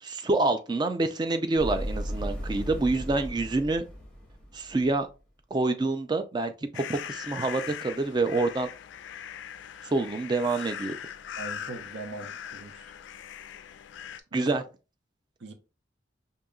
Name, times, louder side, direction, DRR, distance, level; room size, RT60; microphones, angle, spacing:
voice 1, 0.0-3.8 4.5-5.1 5.5-8.7 9.9-11.0 14.3-14.6, right 3 dB, 25° right, 0.4 m, -27 dB
sound 1, 1.6-5.0, equal, 5° left, 0.9 m, -36 dB
sound 2, 6.7-14.2, left 9 dB, 75° left, 0.3 m, -40 dB
voice 2, 11.4-12.7 14.3-14.5 15.4-15.5, right 3 dB, 75° right, 0.7 m, -40 dB
5.0 x 2.8 x 2.3 m
head